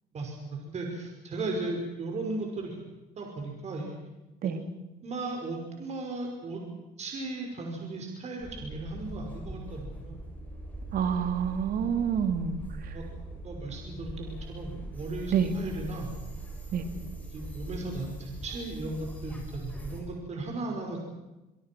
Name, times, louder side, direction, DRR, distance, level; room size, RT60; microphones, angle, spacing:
voice 1, 0.1-2.8 3.2-4.0 4.4-4.5 5.0-6.6 7.0-10.2 12.9-13.0 13.4-16.1 17.0-21.0, right 2 dB, 40° right, 1 dB, 5.9 m, -36 dB
sound 1, 8.4-20.0, right 2 dB, 10° left, 7.4 m, -41 dB
voice 2, 10.9-12.9 15.3-15.5 16.7-16.8, right 7 dB, 60° right, 8 dB, 2.9 m, -28 dB
25.5 x 23.0 x 6.3 m, 1.0 s
cardioid pair, 110°, 17 cm